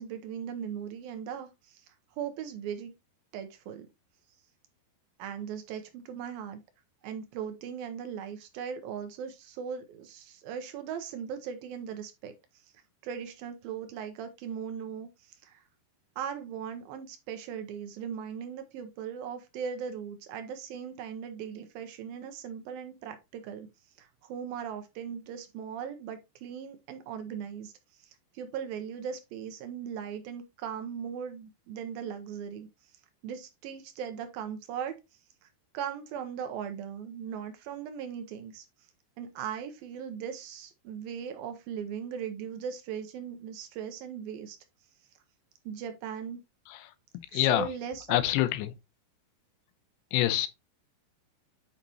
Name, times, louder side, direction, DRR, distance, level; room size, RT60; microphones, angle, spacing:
voice 1, 0.0-1.9 2.2-2.9 3.3-3.9 5.2-6.6 7.0-12.3 13.0-15.6 16.2-23.7 24.0-27.7 28.0-32.7 33.2-35.0 35.4-35.5 35.7-38.7 39.2-44.6 45.7-46.4 47.3-48.2, right 7 dB, 80° right, 2.1 m, -38 dB
voice 2, 47.3-47.7 48.1-48.7 50.1-50.5, left 14 dB, 85° left, 2.9 m, -26 dB
8.7 x 5.5 x 2.9 m
omnidirectional pair, 5.0 m